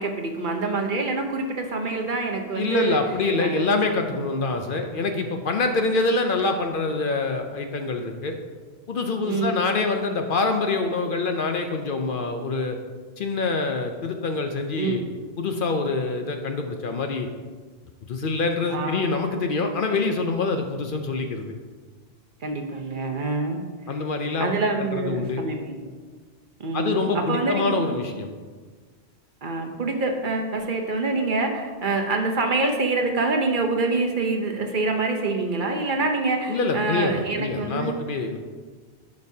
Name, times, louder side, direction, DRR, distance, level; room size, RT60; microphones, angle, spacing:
voice 1, 0.0-3.0 3.4-3.7 9.3-9.6 14.8-15.1 18.7-19.1 22.4-23.6 24.4-25.9 26.6-27.0 27.3-27.9 29.4-38.0, right 3 dB, 55° right, 3 dB, 0.9 m, -26 dB
voice 2, 2.6-8.4 8.9-12.8 13.2-15.0 15.4-17.3 18.1-21.5 23.9-24.5 24.8-25.4 26.7-28.3 36.5-38.4, left 3 dB, 60° left, 5 dB, 0.7 m, -25 dB
11.5 x 5.3 x 2.7 m, 1.5 s
omnidirectional pair, 1.1 m